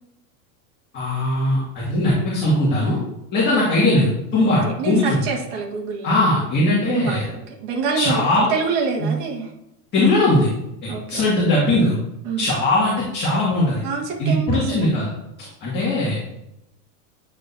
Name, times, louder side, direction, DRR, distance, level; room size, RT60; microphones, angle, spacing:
voice 1, 0.9-3.0 3.3-5.2 6.0-7.3 7.9-8.5 9.0-9.1 9.9-10.5 10.8-12.0 12.4-13.8 14.2-15.1 15.4-16.2, left 1 dB, 25° left, -7 dB, 2.2 m, -20 dB
voice 2, 3.4-3.8 4.4-6.1 6.9-9.5 10.9-11.3 12.2-12.5 13.8-14.9, right 5 dB, 40° right, -1 dB, 1.9 m, -27 dB
9.6 x 6.3 x 2.8 m, 0.85 s
supercardioid pair, 160°, 45 cm